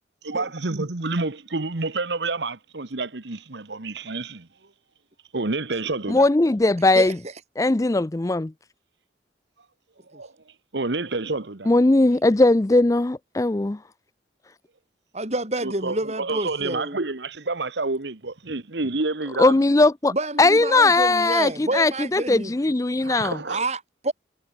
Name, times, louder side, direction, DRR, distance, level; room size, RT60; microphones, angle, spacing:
voice 1, 0.2-4.5 5.3-6.3 10.1-10.3 10.7-11.7 15.6-19.6 23.0-23.6, right 3 dB, 70° right, 1.4 m, -28 dB
voice 2, 6.1-7.2 7.6-8.5 11.7-13.8 19.4-20.1 20.4-23.4, left 2 dB, 20° left, 0.4 m, -19 dB
voice 3, 15.1-17.0 20.1-22.5 23.5-24.1, right 2 dB, 35° right, 4.2 m, -28 dB
head